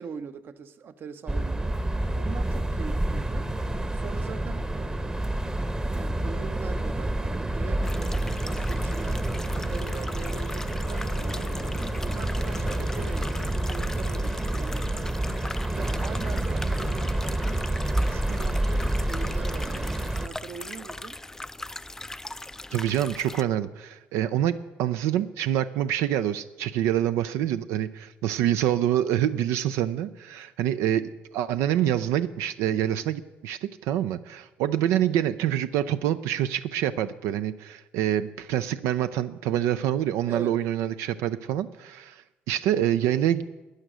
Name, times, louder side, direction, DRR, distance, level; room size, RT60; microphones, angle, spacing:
voice 1, 0.0-3.5 3.9-5.5 5.9-9.3 9.5-11.5 12.0-17.7 17.9-21.2 29.4-29.5 40.3-40.6, right 6 dB, 50° right, 0.8 m, -42 dB
sound 1, 1.3-20.3, right 1 dB, 15° right, 0.9 m, -28 dB
sound 2, 7.6-16.5, left 6 dB, 90° left, 1.0 m, -49 dB
sound 3, 7.8-23.4, left 2 dB, 10° left, 0.4 m, -40 dB
voice 2, 22.7-31.1 31.3-43.5, right 11 dB, 80° right, 0.4 m, -26 dB
13.0 x 9.3 x 6.2 m
supercardioid pair, 80°, 5 cm